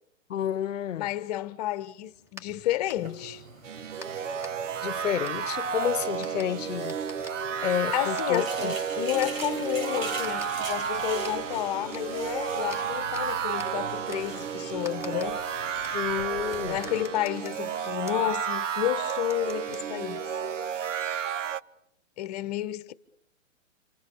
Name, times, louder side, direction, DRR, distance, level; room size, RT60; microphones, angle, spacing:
voice 1, 0.3-1.1 4.8-7.0 7.6-8.7 15.9-16.8, left 10 dB, 70° left, 1.0 m, -30 dB
voice 2, 1.0-3.4 7.9-15.4 16.7-20.2 22.2-22.9, left 14 dB, 30° left, 1.3 m, -31 dB
sound 1, 2.1-20.5, left 1 dB, 5° right, 1.9 m, -50 dB
sound 2, 3.0-17.0, right 2 dB, 90° right, 5.5 m, -43 dB
sound 3, 3.6-21.6, right 7 dB, 70° right, 1.2 m, -32 dB
29.0 x 24.5 x 7.2 m
hypercardioid pair, 155°, 39 cm